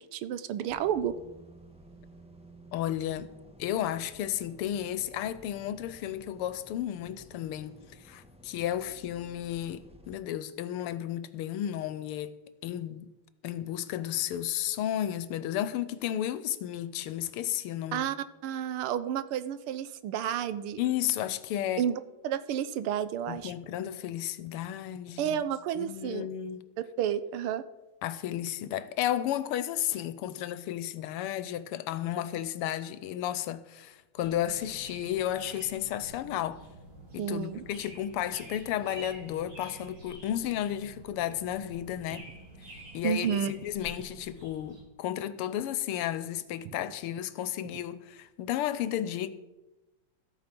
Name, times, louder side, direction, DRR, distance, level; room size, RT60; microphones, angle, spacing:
voice 1, 0.1-1.1 17.9-18.2 18.4-20.8 21.8-23.5 25.2-26.3 27.0-27.6 37.2-37.6 43.0-43.5, right 9 dB, 80° right, 1.6 m, -31 dB
sound 1, 0.7-10.2, equal, 5° right, 0.8 m, -54 dB
voice 2, 2.7-3.3 3.6-12.4 12.6-13.1 13.4-18.1 20.8-21.8 23.3-25.4 25.8-26.6 28.0-36.6 37.1-42.3 42.7-49.3, left 11 dB, 85° left, 1.6 m, -33 dB
sound 2, 34.2-44.8, right 2 dB, 50° right, 6.2 m, -48 dB
13.5 x 8.7 x 5.9 m
omnidirectional pair, 2.4 m